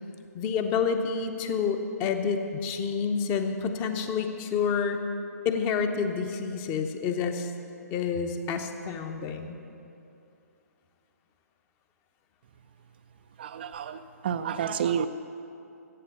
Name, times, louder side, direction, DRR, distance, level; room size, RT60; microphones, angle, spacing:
voice 1, 0.3-5.0 5.4-7.5 7.9-9.6, left 6 dB, 20° left, 7 dB, 0.8 m, -28 dB
voice 2, 13.4-15.1, right 8 dB, 40° right, 10 dB, 0.4 m, -30 dB
14.5 x 8.3 x 7.0 m, 2.7 s
figure-of-eight pair, 125°, 9 cm